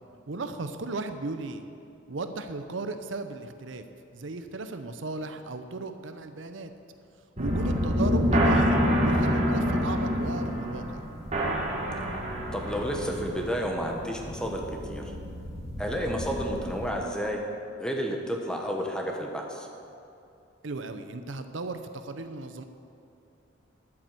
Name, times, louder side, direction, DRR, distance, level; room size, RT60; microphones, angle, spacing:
voice 1, 0.3-1.6 2.1-3.8 4.1-6.7 7.4-11.1 20.6-22.6, right 3 dB, 70° right, 9 dB, 0.7 m, -36 dB
sound 1, 7.4-16.9, equal, 35° right, 1.8 m, -28 dB
voice 2, 12.5-14.6 14.9-15.1 15.8-17.4 17.8-19.7, equal, 5° left, 1 dB, 1.2 m, -31 dB
11.0 x 8.8 x 7.6 m, 2.6 s
head